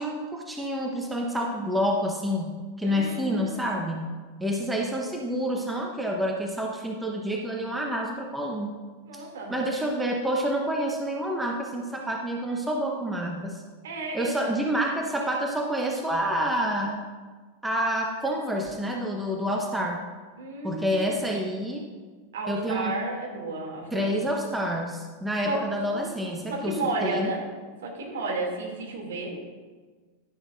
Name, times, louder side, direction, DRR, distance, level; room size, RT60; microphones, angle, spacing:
voice 1, 0.0-4.1 4.4-8.7 9.1-9.2 9.5-13.6 14.1-17.0 17.6-20.0 20.6-21.9 22.5-22.9 23.9-27.3, equal, 5° right, 0 dB, 0.9 m, -28 dB
voice 2, 2.8-3.7 9.1-10.1 13.8-14.5 20.4-21.2 22.3-24.1 25.4-25.6 25.9-27.5 27.8-29.4, right 2 dB, 60° right, -1 dB, 2.5 m, -33 dB
11.5 x 10.0 x 2.5 m, 1.4 s
figure-of-eight pair, 90°, 0 cm